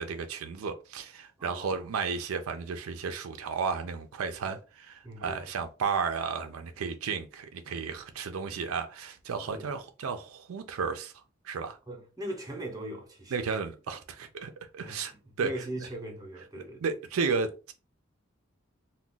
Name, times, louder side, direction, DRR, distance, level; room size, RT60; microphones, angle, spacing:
voice 1, 0.0-11.1 11.4-11.8 13.3-15.1 15.4-15.5 16.8-17.7, right 5 dB, 80° right, 0.4 m, -33 dB
voice 2, 1.4-1.7 5.0-5.5 9.5-9.7 11.9-13.6 14.8-16.8, right 1 dB, 15° right, 0.6 m, -40 dB
2.3 x 2.2 x 3.8 m
head